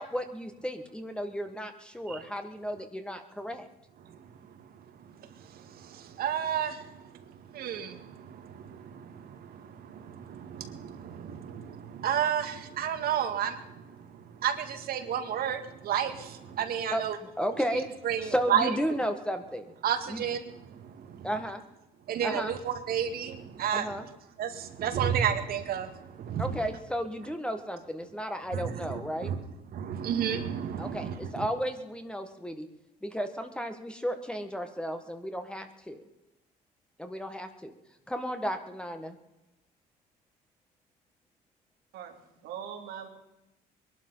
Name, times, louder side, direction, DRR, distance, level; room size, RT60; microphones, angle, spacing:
voice 1, 0.0-3.7 16.9-17.9 18.2-19.7 20.1-20.2 21.2-21.6 22.2-22.6 23.7-24.1 26.4-29.3 30.8-32.7 33.0-36.0 37.0-37.7 38.1-39.2, equal, 5° left, 7 dB, 1.6 m, -34 dB
voice 2, 5.2-17.2 18.0-18.7 19.8-20.4 20.7-21.3 22.1-23.9 24.4-26.6 28.5-28.7 29.2-29.4 29.7-31.5, right 9 dB, 65° right, 8 dB, 2.0 m, -32 dB
voice 3, 41.9-43.1, right 8 dB, 90° right, 2 dB, 3.1 m, -41 dB
21.5 x 12.0 x 5.6 m, 0.98 s
cardioid pair, 110°, 17 cm